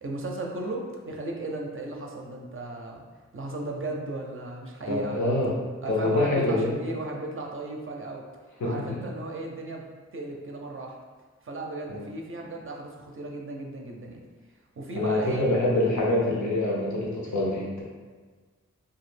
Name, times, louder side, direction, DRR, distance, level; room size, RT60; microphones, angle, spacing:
voice 1, 0.0-3.0 3.3-5.3 5.8-8.3 8.6-11.0 11.4-14.2 14.8-15.5, right 2 dB, 45° right, 0 dB, 0.5 m, -36 dB
voice 2, 4.9-5.6 5.9-6.7 8.6-9.0 11.9-12.1 14.9-17.8, left 1 dB, 80° left, -4 dB, 0.7 m, -25 dB
2.3 x 2.0 x 3.2 m, 1.4 s
wide cardioid pair, 50°, 29 cm